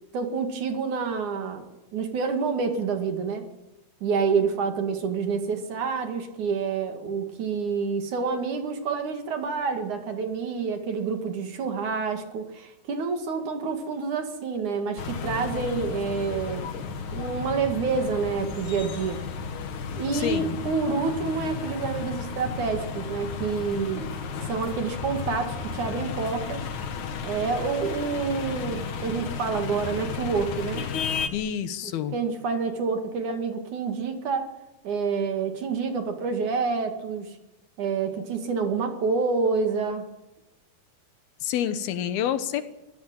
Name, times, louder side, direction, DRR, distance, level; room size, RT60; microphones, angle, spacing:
voice 1, 0.1-1.6 1.9-3.4 4.0-16.7 17.1-19.2 20.0-24.1 24.4-26.7 27.2-30.9 31.8-34.5 34.8-37.4 37.8-40.0, right 5 dB, 55° right, 6 dB, 3.3 m, -28 dB
sound 1, 15.0-31.3, left 6 dB, 55° left, 3.0 m, -33 dB
voice 2, 20.1-20.6 31.3-32.2 41.4-42.6, left 10 dB, 80° left, 11 dB, 3.1 m, -28 dB
25.5 x 17.0 x 9.0 m, 0.99 s
omnidirectional pair, 4.4 m